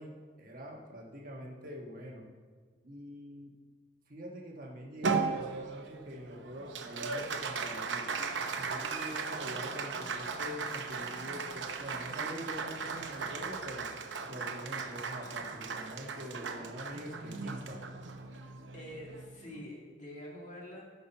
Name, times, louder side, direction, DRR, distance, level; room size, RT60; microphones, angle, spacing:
voice 1, 0.0-2.3 2.8-3.5 4.1-8.1 8.6-13.9 14.3-17.8, equal, 50° right, -1 dB, 1.4 m, -45 dB
Applause, 5.0-19.7, right 4 dB, 80° right, 0.8 m, -37 dB
voice 2, 18.7-20.8, equal, 45° left, -2 dB, 2.3 m, -46 dB
15.5 x 5.7 x 4.5 m, 1.5 s
head